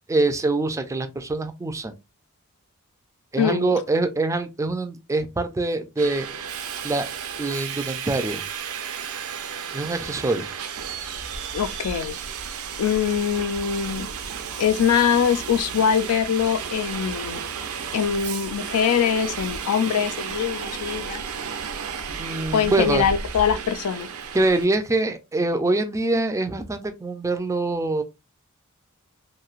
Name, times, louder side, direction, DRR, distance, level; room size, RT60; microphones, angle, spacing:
voice 1, 0.1-1.9 3.3-6.3 6.8-7.1 7.4-8.4 9.7-10.5 22.2-23.1 24.3-28.0, right 2 dB, 15° right, 0.3 m, -24 dB
voice 2, 3.4-3.7 11.5-12.2 12.8-14.1 14.6-17.4 17.9-21.2 22.5-24.1, left 8 dB, 80° left, 0.4 m, -23 dB
Subway metro underground, 6.0-24.7, right 7 dB, 70° right, 0.5 m, -33 dB
3.0 x 2.6 x 2.4 m
head